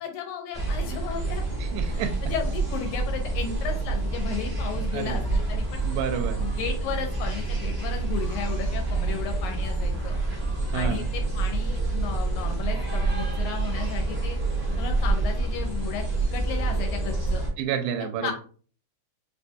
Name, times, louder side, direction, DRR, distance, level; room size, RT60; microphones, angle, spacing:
voice 1, 0.0-1.6 1.8-5.9 6.4-10.2 10.7-14.4 14.8-16.0 16.3-17.4 18.2-18.3, left 7 dB, 85° left, 3 dB, 2.0 m, -34 dB
sound 1, 0.5-17.5, right 3 dB, 60° right, 0.6 m, -27 dB
voice 2, 1.6-2.1 4.9-5.2 5.8-6.5 10.7-11.1 17.6-18.3, right 8 dB, 85° right, 7 dB, 2.0 m, -29 dB
4.6 x 2.2 x 2.6 m, 0.42 s
omnidirectional pair, 3.4 m